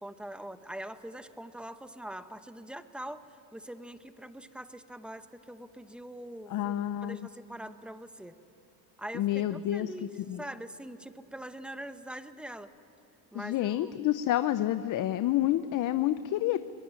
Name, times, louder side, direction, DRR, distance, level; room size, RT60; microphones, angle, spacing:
voice 1, 0.0-3.2 3.5-6.8 7.0-8.3 9.0-10.1 10.4-12.7 13.3-14.0, right 1 dB, ahead, 11 dB, 0.8 m, -43 dB
voice 2, 6.5-7.2 9.1-9.9 10.3-10.4 13.3-16.6, left 13 dB, 50° left, 12 dB, 0.7 m, -28 dB
23.0 x 20.5 x 8.9 m, 3.0 s
cardioid pair, 125°, 41 cm